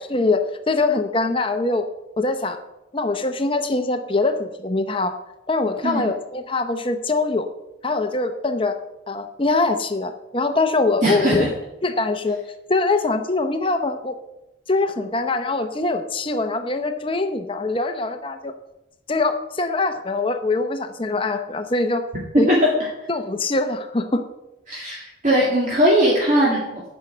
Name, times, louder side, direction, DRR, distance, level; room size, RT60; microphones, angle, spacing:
voice 1, 0.1-1.9 2.2-2.6 2.9-5.1 5.5-7.5 7.8-8.8 9.1-11.5 11.8-12.4 12.7-14.1 14.7-18.5 19.1-22.0 22.4-22.5 23.1-24.2, left 3 dB, 25° left, 8 dB, 0.7 m, -23 dB
voice 2, 11.0-11.5 22.3-22.9 24.7-26.8, equal, 40° right, -4 dB, 2.1 m, -19 dB
10.0 x 6.3 x 7.8 m, 0.95 s
head